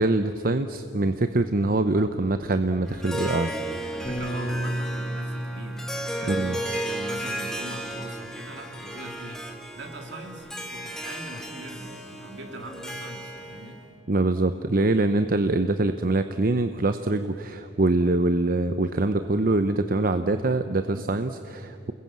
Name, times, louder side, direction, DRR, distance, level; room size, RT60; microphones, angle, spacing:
voice 1, 0.0-3.5 6.3-6.6 14.1-21.9, right 2 dB, 50° right, 9 dB, 0.8 m, -24 dB
Harp, 2.9-13.8, right 1 dB, 5° left, 2.5 m, -34 dB
voice 2, 3.9-9.5 9.7-13.8 20.9-21.1, right 1 dB, 70° right, 2 dB, 3.6 m, -41 dB
Bass guitar, 4.1-10.3, right 1 dB, 20° left, 2.4 m, -36 dB
29.0 x 21.0 x 7.6 m, 2.5 s
head